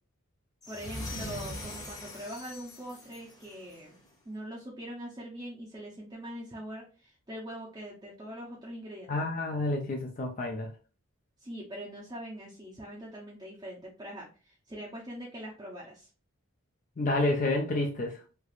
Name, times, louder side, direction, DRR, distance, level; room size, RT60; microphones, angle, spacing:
sound 1, 0.6-3.9, left 1 dB, 15° left, 0.9 m, -41 dB
voice 1, 0.7-4.0 4.3-9.3 11.4-16.1, equal, 20° right, -5 dB, 0.6 m, -42 dB
voice 2, 9.1-10.7 17.0-18.2, left 2 dB, 35° left, 2 dB, 0.4 m, -29 dB
3.2 x 3.0 x 2.4 m, 0.35 s
head